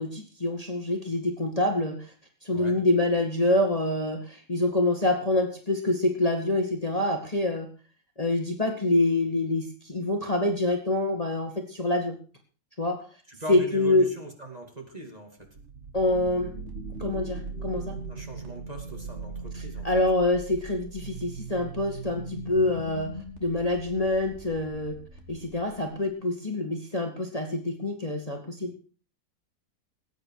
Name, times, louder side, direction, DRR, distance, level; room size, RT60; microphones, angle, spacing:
voice 1, 0.0-2.1 2.4-7.7 8.2-12.2 12.8-13.0 13.5-14.1 15.9-16.5 17.0-18.0 19.6-23.1 23.4-25.0 25.3-28.7, left 2 dB, 25° left, 3 dB, 1.9 m, -26 dB
voice 2, 13.3-15.4 18.1-19.9, right 1 dB, 25° right, 2 dB, 2.7 m, -40 dB
sound 1, 15.4-26.1, right 3 dB, 45° right, 2.4 m, -39 dB
19.5 x 9.2 x 4.8 m, 0.38 s
omnidirectional pair, 1.7 m